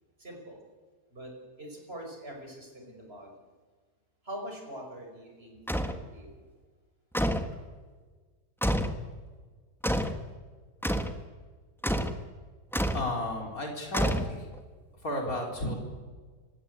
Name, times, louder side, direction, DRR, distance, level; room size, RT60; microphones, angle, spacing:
voice 1, 0.2-0.6 1.1-3.3 4.2-6.4, equal, 35° right, 1 dB, 5.7 m, -44 dB
sound 1, 5.7-6.0 7.1-7.5 8.6-9.0 9.8-10.2 10.8-11.2 11.8-12.2 12.7-13.1 13.9-14.6, equal, ahead, 1.1 m, -28 dB
voice 2, 12.9-14.5 14.9-15.8, left 1 dB, 55° left, 1 dB, 4.6 m, -33 dB
28.0 x 17.0 x 8.4 m, 1.5 s
omnidirectional pair, 1.8 m